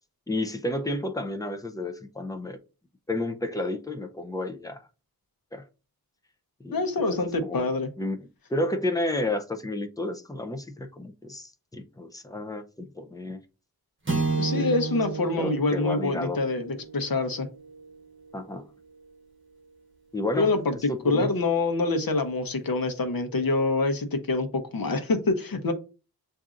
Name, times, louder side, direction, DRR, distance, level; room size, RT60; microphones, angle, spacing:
voice 1, 0.3-2.6 3.1-4.8 5.5-5.6 6.6-13.4 14.2-14.8 15.2-16.4 18.3-18.7 20.1-21.3, left 1 dB, 10° left, 0.5 m, -32 dB
voice 2, 6.7-7.9 14.4-17.5 20.4-25.7, left 3 dB, 65° left, 0.9 m, -26 dB
sound 1, 14.1-18.5, right 4 dB, 30° right, 1.3 m, -32 dB
7.0 x 2.6 x 2.5 m
wide cardioid pair, 80°, 38 cm